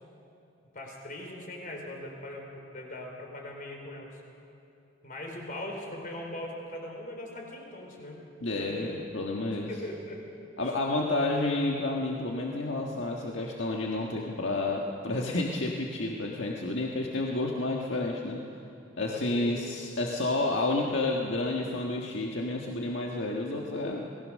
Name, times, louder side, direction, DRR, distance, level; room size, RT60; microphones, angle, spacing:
voice 1, 0.7-4.1 5.0-8.2 8.6-8.9 9.7-10.2 10.7-10.8 19.0-19.6, left 1 dB, 45° left, 1 dB, 4.5 m, -40 dB
voice 2, 8.4-9.7 10.6-18.4 19.0-24.1, left 2 dB, 70° left, -1 dB, 1.7 m, -30 dB
27.5 x 19.5 x 6.5 m, 2.7 s
head